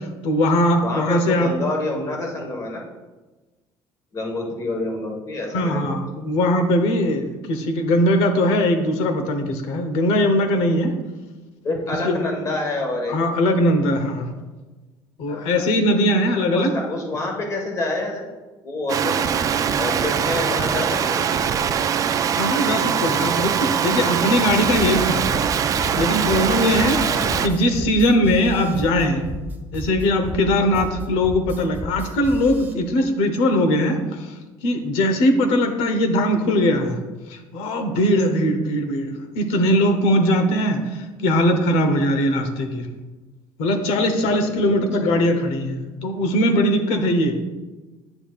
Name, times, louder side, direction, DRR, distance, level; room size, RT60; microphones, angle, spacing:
voice 1, 0.0-1.5 5.5-10.9 12.0-12.2 13.1-14.3 15.2-16.7 22.4-27.0 27.4-29.3 29.7-34.3 34.6-37.0 37.3-42.9 43.6-47.4, left 1 dB, 80° left, 6 dB, 1.0 m, -20 dB
voice 2, 0.8-2.8 4.1-6.0 11.6-13.1 15.3-15.6 16.4-18.3 18.6-19.3 19.8-21.4 26.9-27.5 30.6-30.9 44.2-45.4, left 2 dB, 35° left, 1 dB, 1.5 m, -28 dB
sound 1, 18.9-27.5, right 7 dB, 35° right, 0.4 m, -22 dB
sound 2, 24.7-32.7, left 1 dB, 20° right, 0.8 m, -32 dB
9.6 x 6.9 x 2.4 m, 1.2 s
cardioid pair, 135°, 10 cm